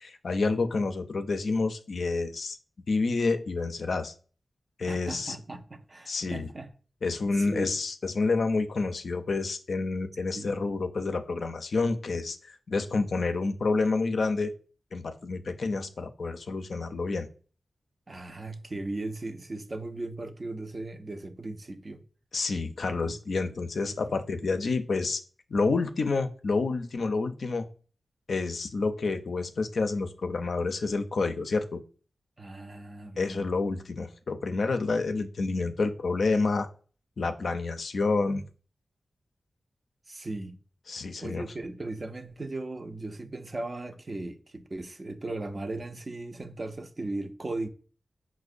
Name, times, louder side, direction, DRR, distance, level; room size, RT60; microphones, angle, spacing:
voice 1, 0.0-2.6 2.9-4.1 4.8-5.4 6.1-6.5 7.0-14.5 14.9-17.3 22.3-25.2 25.5-27.7 28.3-31.8 33.2-36.7 37.2-38.4 40.9-41.5, left 3 dB, 75° left, 0.3 m, -29 dB
voice 2, 4.9-6.7 7.3-7.7 10.3-10.5 18.1-22.0 23.0-23.2 23.4-23.5 23.9-24.0 24.3-24.4 32.4-33.5 40.1-40.6 41.2-47.7, right 2 dB, 40° right, 0.4 m, -37 dB
5.0 x 2.0 x 2.5 m
wide cardioid pair, 70°, 0 cm